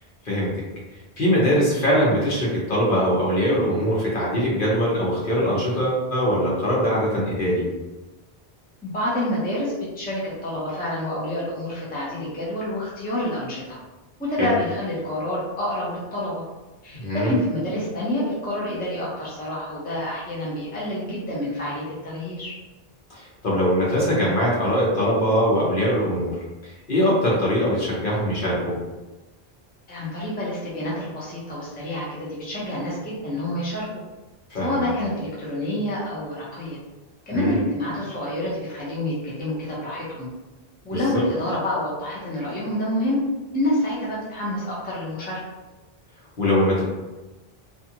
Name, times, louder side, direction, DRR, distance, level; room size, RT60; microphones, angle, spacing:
voice 1, 1.2-7.6 14.4-14.6 16.9-17.3 23.1-26.3 26.6-28.7 34.5-34.8 37.3-37.6 40.9-41.2 46.4-46.8, equal, 60° left, -6 dB, 1.0 m, -22 dB
voice 2, 8.8-13.8 14.2-16.4 16.8-22.5 29.9-33.9 34.6-36.8 37.3-40.3 40.8-43.2 43.5-45.4, left 1 dB, 10° left, -6 dB, 0.6 m, -28 dB
2.6 x 2.4 x 2.8 m, 1.1 s
omnidirectional pair, 1.0 m